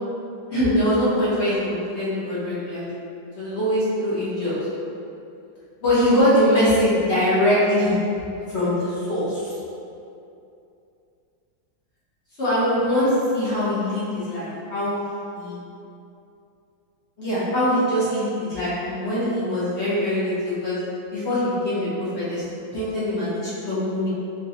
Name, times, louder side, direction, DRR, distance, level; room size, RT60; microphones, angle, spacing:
voice 1, 0.5-2.9 3.3-4.5 5.8-7.9 8.5-9.5 12.4-14.9 15.3-15.6 17.2-20.8 21.1-22.4 22.7-24.1, left 1 dB, 40° left, -11 dB, 1.1 m, -22 dB
4.0 x 3.0 x 2.7 m, 2.6 s
omnidirectional pair, 2.2 m